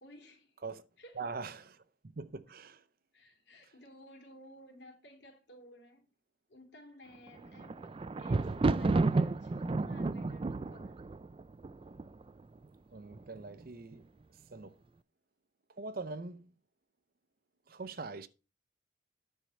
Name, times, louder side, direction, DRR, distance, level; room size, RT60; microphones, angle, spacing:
voice 1, 0.0-0.6 1.0-1.3 3.1-6.1 6.5-7.9 8.2-11.1, equal, 65° left, 2.9 m, -56 dB
voice 2, 1.1-1.8 2.2-2.8 12.9-14.1 14.5-14.8 15.8-16.5 17.7-18.3, right 4 dB, 50° right, 0.7 m, -42 dB
Thunder, 7.3-12.4 13.1-13.6 13.9-14.0, right 3 dB, 30° right, 0.3 m, -31 dB
10.0 x 4.4 x 6.3 m
head